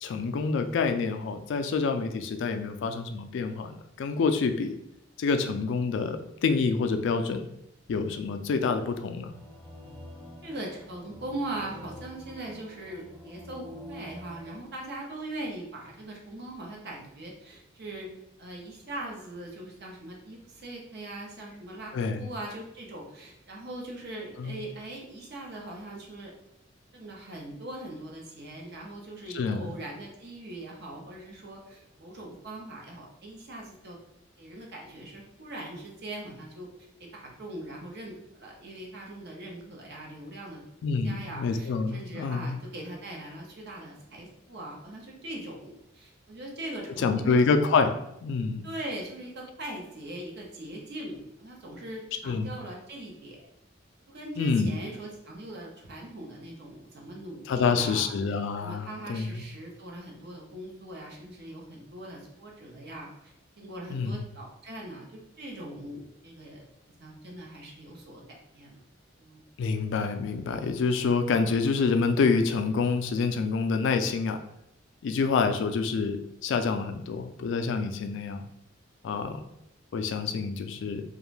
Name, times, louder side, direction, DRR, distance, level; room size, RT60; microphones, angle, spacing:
voice 1, 0.0-4.7 5.2-7.5 7.9-9.3 21.9-22.3 24.4-24.6 29.3-29.7 40.8-42.5 47.0-48.0 48.2-48.6 52.2-52.5 54.4-54.7 57.5-59.4 63.9-64.2 69.6-74.4 75.0-78.4 79.0-79.5 79.9-81.0, left 4 dB, 65° left, 7 dB, 0.3 m, -27 dB
sound 1, 9.3-14.6, equal, 5° left, 0.6 m, -46 dB
voice 2, 10.4-18.1 18.4-26.3 26.9-34.0 34.4-36.7 37.0-40.6 40.9-47.5 48.6-53.4 54.1-58.1 58.6-66.6 67.0-68.2 68.5-68.8 69.2-69.4, right 1 dB, 55° right, -1 dB, 0.7 m, -41 dB
2.5 x 2.2 x 3.1 m, 0.79 s
head